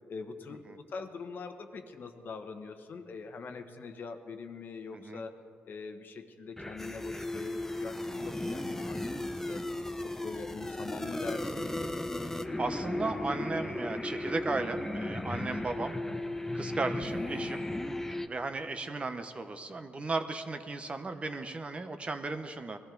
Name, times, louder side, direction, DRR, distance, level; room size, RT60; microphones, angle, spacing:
voice 1, 0.1-5.3 5.6-9.6 10.0-11.8, left 4 dB, 50° left, 7 dB, 1.1 m, -43 dB
voice 2, 4.9-5.3 12.6-16.0 16.5-17.6 18.3-22.8, right 3 dB, 30° right, 8 dB, 0.8 m, -35 dB
sound 1, 6.6-18.3, left 1 dB, 10° left, 0.7 m, -35 dB
20.5 x 13.5 x 3.9 m, 2.6 s
cardioid pair, 100°, 4 cm